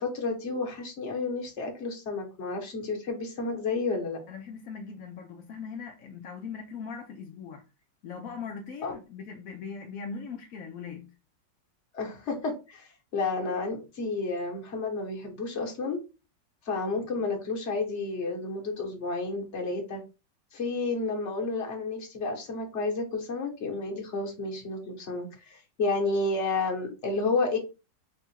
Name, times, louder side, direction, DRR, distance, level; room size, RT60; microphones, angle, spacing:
voice 1, 0.0-4.2 8.8-8.9 11.9-16.0 16.6-20.0 20.5-27.6, left 3 dB, 45° left, 1.2 m, -31 dB
voice 2, 4.3-7.6 8.0-11.1 16.9-17.2, left 5 dB, 70° left, 0.8 m, -40 dB
3.7 x 2.4 x 4.2 m
omnidirectional pair, 2.0 m